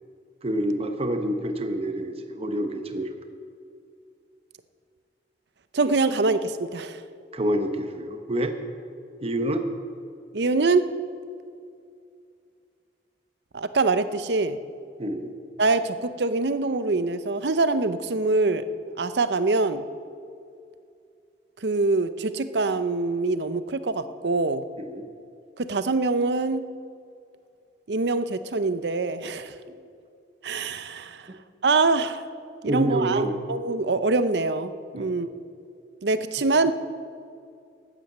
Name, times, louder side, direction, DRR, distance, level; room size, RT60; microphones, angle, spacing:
voice 1, 0.4-3.1 7.3-8.5 9.2-9.7 15.0-15.3 24.8-25.1 29.8-29.9 31.3-31.4 32.7-33.4 34.9-35.2, right 1 dB, 35° right, 6 dB, 1.1 m, -27 dB
voice 2, 5.7-7.0 10.3-10.9 13.5-14.6 15.6-18.6 19.0-19.8 21.6-24.6 25.6-26.6 27.9-29.6 30.4-31.2 31.6-32.2 32.6-33.2 33.5-35.3 36.0-36.7, right 3 dB, 70° right, 12 dB, 0.7 m, -24 dB
12.5 x 9.0 x 7.9 m, 2.4 s
head